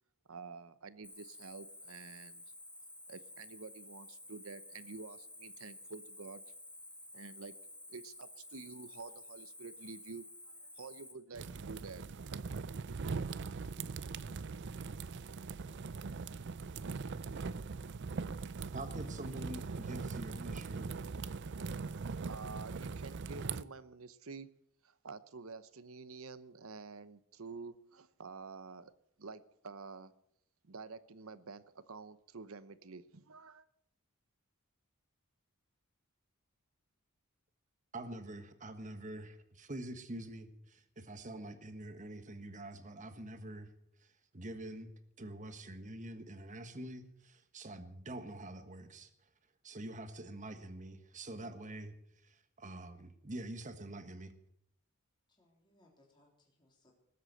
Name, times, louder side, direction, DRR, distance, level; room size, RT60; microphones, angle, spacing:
voice 1, 0.3-2.4 3.1-6.4 7.1-7.5 7.9-12.0 22.3-24.6 24.8-28.9 29.2-30.1 30.6-33.6, right 4 dB, 75° right, 14 dB, 0.9 m, -49 dB
Cricket, 1.0-11.1, left 1 dB, 5° left, 2.0 m, -52 dB
sound 1, 11.3-23.6, right 4 dB, 55° right, 0.5 m, -41 dB
voice 2, 15.6-16.4 55.3-56.9, left 2 dB, 20° left, -1 dB, 3.6 m, -69 dB
voice 3, 18.7-20.9 37.9-43.7 44.3-44.9 45.2-49.1 49.6-51.9 52.2-54.3, right 1 dB, 35° right, 9 dB, 1.4 m, -46 dB
19.5 x 8.2 x 7.8 m, 0.75 s
head